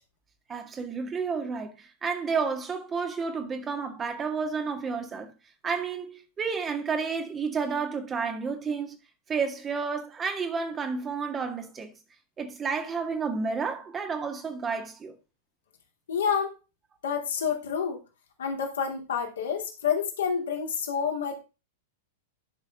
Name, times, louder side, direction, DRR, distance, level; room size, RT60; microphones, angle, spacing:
voice 1, 0.5-5.3 5.6-9.0 9.3-11.9 12.4-15.2, right 5 dB, 20° right, 1.9 m, -31 dB
voice 2, 16.1-16.5 17.0-18.0 18.4-21.4, left 7 dB, 65° left, 2.8 m, -28 dB
11.5 x 6.5 x 3.7 m
figure-of-eight pair, 95°, 0 cm